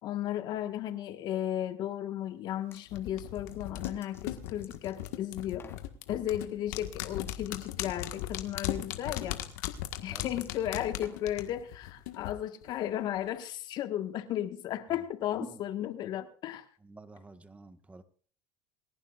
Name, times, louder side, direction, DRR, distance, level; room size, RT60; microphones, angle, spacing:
voice 1, 0.0-5.7 6.1-9.4 10.0-16.6, left 11 dB, 60° left, 8 dB, 1.6 m, -35 dB
sound 1, 2.5-2.9 3.3-5.2 5.5-5.9 7.2-7.4 7.6-11.4, left 5 dB, 30° left, 2.1 m, -55 dB
sound 2, 2.9-12.3 12.6-12.7, left 13 dB, 80° left, 1.6 m, -38 dB
voice 2, 16.8-18.0, right 3 dB, 15° right, 9 dB, 1.5 m, -48 dB
28.0 x 11.5 x 2.5 m, 0.43 s
supercardioid pair, 95°, 9 cm